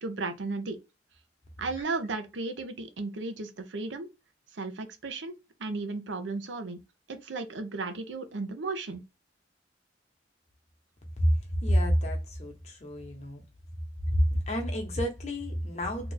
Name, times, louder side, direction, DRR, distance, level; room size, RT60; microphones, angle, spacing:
voice 1, 0.0-0.8 1.6-4.1 4.5-5.3 5.6-6.8 7.1-9.0, right 3 dB, 85° right, 0.7 m, -34 dB
voice 2, 11.6-13.4 14.1-16.1, equal, 35° left, 0.9 m, -28 dB
2.9 x 2.4 x 3.9 m
head